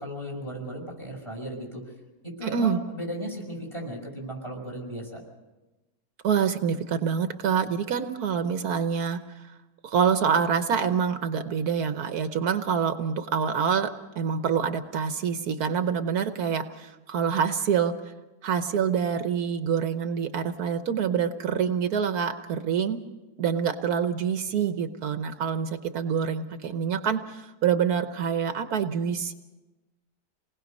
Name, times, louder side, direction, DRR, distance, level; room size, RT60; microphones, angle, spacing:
voice 1, 0.0-1.8 2.4-5.2, equal, 20° left, -1 dB, 5.9 m, -35 dB
voice 2, 2.4-2.8 6.2-9.5 9.8-13.9 14.1-17.9 18.4-23.0 23.4-29.3, right 7 dB, 75° right, 8 dB, 1.4 m, -26 dB
28.0 x 19.5 x 5.4 m, 1.1 s
omnidirectional pair, 1.6 m